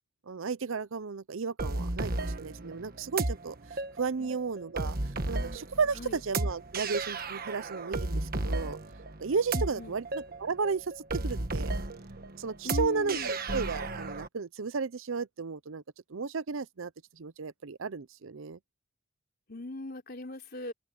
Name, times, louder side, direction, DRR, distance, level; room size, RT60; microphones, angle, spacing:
voice 1, 0.3-5.0 5.3-8.8 9.2-11.8 12.4-15.8 16.1-18.6, right 5 dB, 65° right, 0.6 m, -34 dB
sound 1, 1.6-14.3, right 2 dB, 45° right, 1.4 m, -34 dB
voice 2, 9.5-10.0 12.6-13.4 19.5-20.7, left 1 dB, 45° left, 4.1 m, -39 dB
open air
head